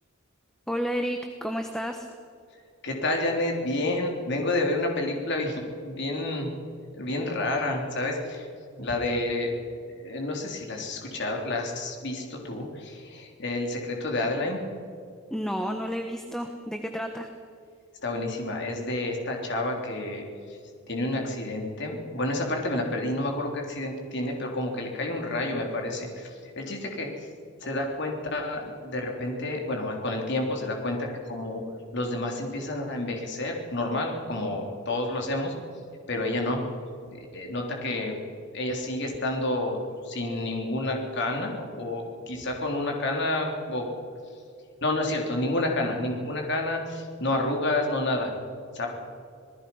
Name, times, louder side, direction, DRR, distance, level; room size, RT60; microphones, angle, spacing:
voice 1, 0.7-2.1 15.3-17.3, equal, 5° left, 4 dB, 1.1 m, -31 dB
voice 2, 2.8-6.5 6.9-8.5 8.8-9.5 9.9-14.6 18.0-20.2 20.9-26.3 26.6-27.1 27.6-31.6 31.9-35.5 36.1-36.6 37.1-38.2 38.5-39.8 40.0-43.9 44.8-48.3 48.7-48.9, left 2 dB, 55° left, 1 dB, 3.7 m, -29 dB
26.5 x 19.0 x 5.6 m, 2.4 s
head